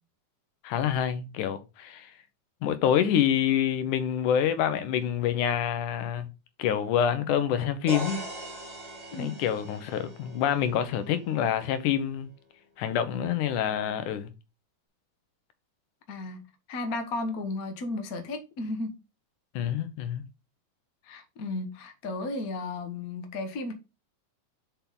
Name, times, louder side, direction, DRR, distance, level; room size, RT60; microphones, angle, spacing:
voice 1, 0.6-2.1 2.6-6.3 6.6-8.2 9.1-12.3 12.8-14.3 19.6-20.2, left 9 dB, 80° left, 2.5 m, -27 dB
sound 1, 7.9-11.7, equal, 15° right, 1.5 m, -41 dB
voice 2, 16.1-16.4 16.7-19.0 21.0-23.7, left 2 dB, 55° left, 0.9 m, -34 dB
7.0 x 5.4 x 3.8 m
omnidirectional pair, 3.5 m